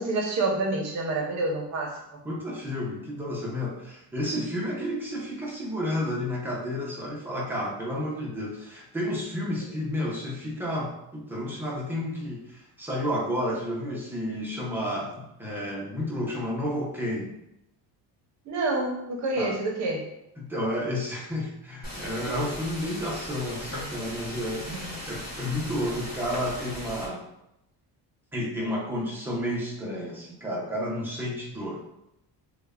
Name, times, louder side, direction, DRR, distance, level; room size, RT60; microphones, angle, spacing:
voice 1, 0.0-2.0 18.4-20.1 24.7-24.9, right 2 dB, 40° right, 0 dB, 0.7 m, -28 dB
voice 2, 2.2-17.3 19.4-19.6 20.4-27.2 28.3-31.8, left 1 dB, 5° right, -4 dB, 0.4 m, -31 dB
sound 1, 21.8-27.1, left 1 dB, 20° left, 1.3 m, -38 dB
3.2 x 2.1 x 3.4 m, 0.83 s
cardioid pair, 175°, 42 cm